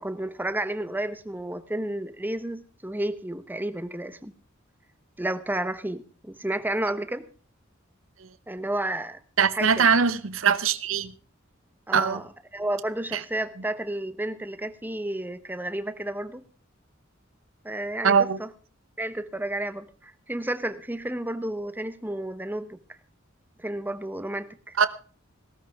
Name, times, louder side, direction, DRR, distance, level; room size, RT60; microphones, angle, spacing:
voice 1, 0.0-4.3 5.2-7.2 8.5-9.2 9.5-9.9 11.9-16.4 17.6-18.5 19.0-22.8 23.6-24.8, right 1 dB, 10° right, 1.0 m, -31 dB
voice 2, 9.4-11.1 11.9-12.2 13.1-13.2 18.0-18.4 24.8-24.9, right 6 dB, 75° right, 0.9 m, -21 dB
18.0 x 13.0 x 3.6 m
head